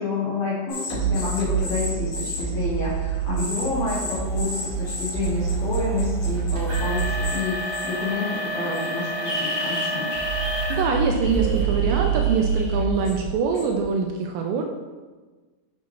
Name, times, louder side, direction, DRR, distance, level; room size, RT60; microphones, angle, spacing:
voice 1, 0.0-10.1, left 3 dB, 75° left, -8 dB, 1.6 m, -29 dB
sound 1, 0.7-7.4 7.7-8.1 8.7-8.8 9.2-13.8, right 5 dB, 45° left, 2.8 m, -26 dB
sound 2, 3.5-10.9 11.3-11.7 12.3-12.4 13.0-13.1, equal, 65° right, 1.5 m, -32 dB
voice 2, 10.7-14.6, right 5 dB, 80° right, 2 dB, 2.5 m, -24 dB
8.4 x 5.7 x 3.0 m, 1.3 s
omnidirectional pair, 5.3 m